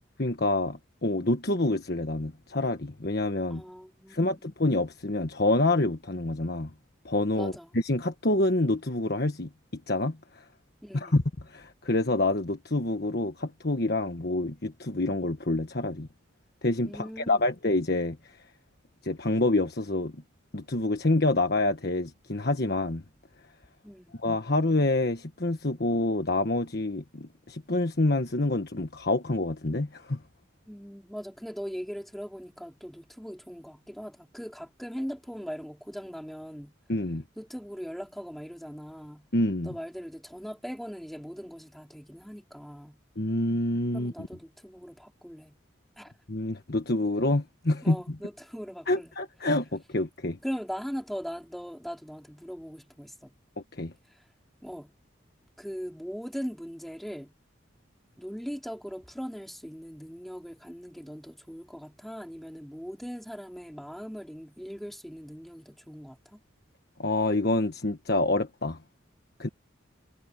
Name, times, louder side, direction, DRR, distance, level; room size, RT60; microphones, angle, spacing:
voice 1, 0.2-3.6 4.1-6.7 7.0-10.4 10.9-16.1 16.6-18.4 19.0-20.2 20.5-23.0 24.2-30.2 36.9-37.2 39.3-39.7 43.2-44.3 46.3-48.0 48.9-50.4 53.6-53.9 67.0-68.8 69.4-69.5, left 2 dB, 55° left, 1.4 m, -27 dB
voice 2, 3.5-4.5 7.3-7.7 10.8-11.2 16.8-17.5 23.8-24.2 30.7-36.8 37.4-39.3 39.6-43.0 43.9-45.6 46.0-46.1 47.8-49.1 50.4-53.3 54.1-54.3 54.6-54.9 55.6-57.3 58.2-66.4, equal, ahead, 3.3 m, -40 dB
head